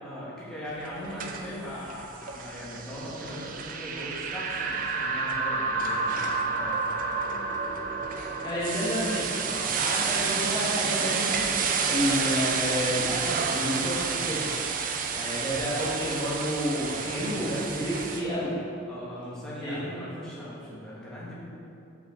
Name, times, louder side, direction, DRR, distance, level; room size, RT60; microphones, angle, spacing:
voice 1, 0.0-7.8 17.1-17.7 18.9-21.3, equal, 5° left, -9 dB, 1.4 m, -40 dB
sound 1, 0.9-18.2, right 5 dB, 40° right, 0.4 m, -30 dB
voice 2, 8.4-11.4 11.9-14.4 15.1-18.5 19.6-19.8, equal, 25° left, -10 dB, 1.1 m, -30 dB
5.8 x 5.3 x 4.2 m, 2.7 s
head